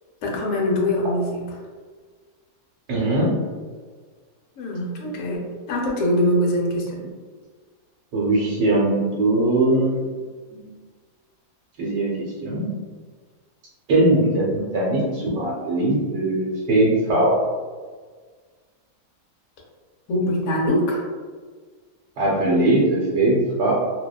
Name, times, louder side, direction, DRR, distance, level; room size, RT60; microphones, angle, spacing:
voice 1, 0.2-1.4 4.6-7.0 20.1-21.0, left 1 dB, 65° left, -2 dB, 0.9 m, -23 dB
voice 2, 2.9-3.4 8.1-10.1 10.5-10.7 11.8-12.7 13.9-17.4 22.2-23.7, right 2 dB, 80° right, -6 dB, 1.2 m, -20 dB
2.7 x 2.1 x 2.2 m, 1.5 s
omnidirectional pair, 1.7 m